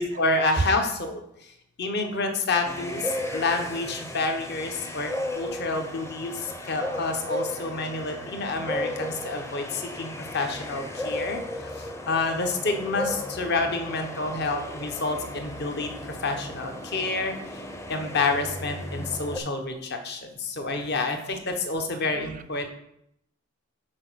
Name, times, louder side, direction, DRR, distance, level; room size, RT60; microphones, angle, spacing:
voice 1, 0.0-1.5 1.8-17.6 17.9-22.7, left 3 dB, 55° left, 5 dB, 1.0 m, -29 dB
sound 1, 2.6-19.4, left 1 dB, 15° left, 0.6 m, -35 dB
voice 2, 20.6-21.1 22.1-22.4, right 3 dB, 40° right, 12 dB, 0.4 m, -32 dB
6.2 x 4.9 x 6.2 m, 0.77 s
head